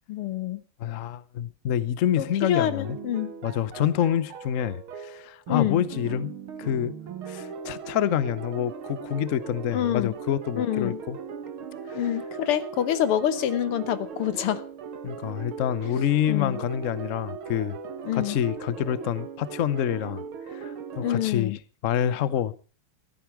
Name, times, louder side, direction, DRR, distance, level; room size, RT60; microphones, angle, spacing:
voice 1, 0.1-0.6 2.2-3.3 5.5-5.8 9.7-10.1 10.6-11.0 11.9-14.6 16.3-16.6 18.1-18.4 21.0-21.6, left 11 dB, 90° left, 2.0 m, -26 dB
voice 2, 0.8-3.0 3.4-7.0 7.3-11.2 11.9-12.1 15.0-17.8 18.1-20.2 20.5-22.5, left 10 dB, 65° left, 0.7 m, -27 dB
sound 1, 2.6-21.2, right 6 dB, 75° right, 2.3 m, -38 dB
15.0 x 13.0 x 4.7 m
omnidirectional pair, 2.4 m